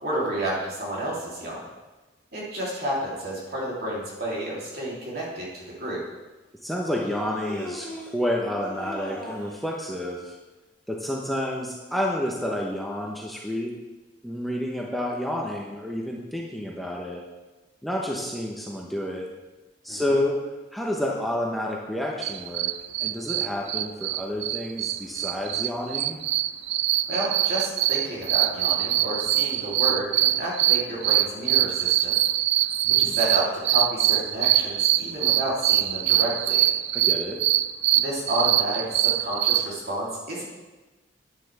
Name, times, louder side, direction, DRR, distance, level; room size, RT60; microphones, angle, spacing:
voice 1, 0.0-1.6 2.3-6.0 19.9-20.2 27.1-32.2 33.0-36.6 37.9-40.4, right 1 dB, 60° right, -5 dB, 3.2 m, -30 dB
Human voice, 5.6-5.7 7.0-8.2 8.6-9.6, left 1 dB, 20° left, 3.7 m, -38 dB
voice 2, 6.6-7.9 8.1-10.4 10.9-13.7 14.2-17.2 17.8-19.3 19.8-20.4 20.7-22.7 23.0-26.2 32.8-33.2 36.9-37.4, left 1 dB, ahead, -2 dB, 0.9 m, -29 dB
sound 1, 22.2-39.7, right 14 dB, 80° right, 0.3 m, -23 dB
10.0 x 9.6 x 3.4 m, 1.2 s
head